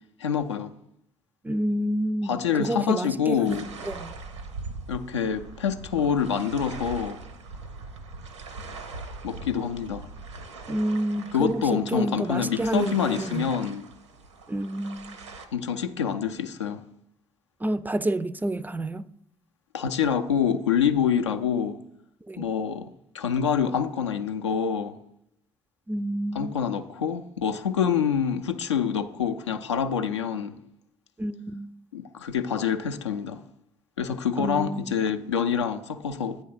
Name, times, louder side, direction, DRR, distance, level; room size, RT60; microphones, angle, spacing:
voice 1, 0.2-0.7 2.2-3.7 4.9-7.2 9.2-10.1 11.3-13.8 15.5-16.8 19.7-21.8 22.4-22.9 23.1-25.0 26.3-30.6 31.9-33.4 34.0-36.4, left 7 dB, 80° left, 0.4 m, -26 dB
voice 2, 1.4-4.1 10.7-13.5 14.5-15.2 17.6-19.1 22.3-22.5 25.9-26.6 31.2-31.7 34.4-35.0, right 1 dB, 10° right, 0.3 m, -29 dB
sound 1, 3.4-15.5, right 3 dB, 80° right, 0.6 m, -41 dB
8.7 x 3.8 x 5.6 m
figure-of-eight pair, 45°, 15 cm